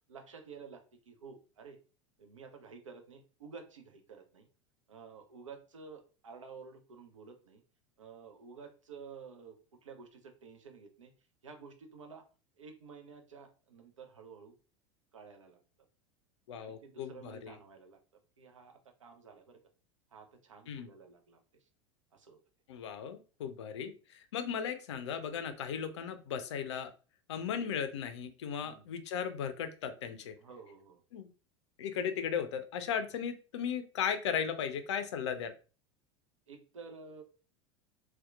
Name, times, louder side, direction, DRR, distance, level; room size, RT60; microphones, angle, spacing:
voice 1, 0.1-1.8 2.2-4.5 4.9-7.6 8.0-11.1 11.4-12.2 12.6-14.5 15.1-15.6 16.5-18.0 18.4-19.6 20.1-21.7 22.1-22.4 28.6-28.8 30.4-31.0 36.5-37.2, right 5 dB, 75° right, 5 dB, 0.5 m, -51 dB
voice 2, 16.5-17.6 20.7-20.9 22.7-26.9 27.3-30.4 31.1-31.3 31.8-35.5, left 7 dB, 60° left, 9 dB, 0.4 m, -36 dB
2.7 x 2.1 x 2.2 m, 0.35 s
figure-of-eight pair, 80°, 16 cm